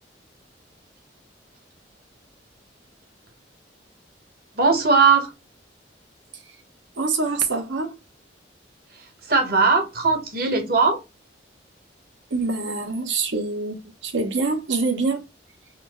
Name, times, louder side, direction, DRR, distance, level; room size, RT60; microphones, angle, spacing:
voice 1, 4.5-5.3 9.0-11.0, right 4 dB, 50° right, 1.2 m, -19 dB
voice 2, 7.0-7.9 12.3-15.2, right 3 dB, 80° right, 1.0 m, -25 dB
4.2 x 2.7 x 3.0 m
head